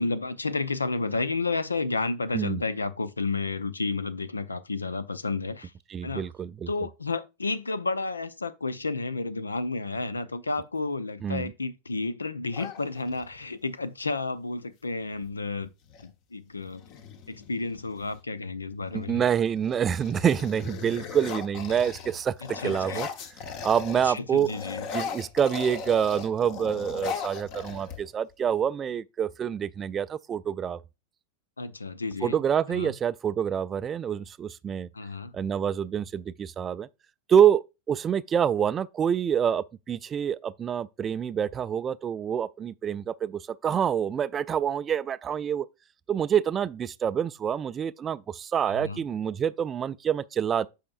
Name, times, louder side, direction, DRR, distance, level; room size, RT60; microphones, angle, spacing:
voice 1, 0.0-5.7 6.0-6.3 6.7-15.7 16.0-16.8 17.3-19.2 22.4-23.1 24.0-24.8 31.6-32.4 32.7-32.9 34.9-35.3 48.8-49.0, left 3 dB, 80° left, 0.5 m, -31 dB
voice 2, 5.9-6.7 11.2-11.5 18.9-23.1 23.6-24.5 24.9-30.8 32.2-34.9 35.3-36.9 37.3-45.7 46.1-50.7, right 8 dB, 25° right, 0.3 m, -27 dB
sound 1, 12.5-13.5 15.2-15.3 15.6-16.1 16.7-18.2 18.8-19.2 19.6-24.1 24.4-28.3, left 6 dB, 45° left, 1.1 m, -38 dB
8.5 x 5.7 x 2.4 m
figure-of-eight pair, 90°, 0 cm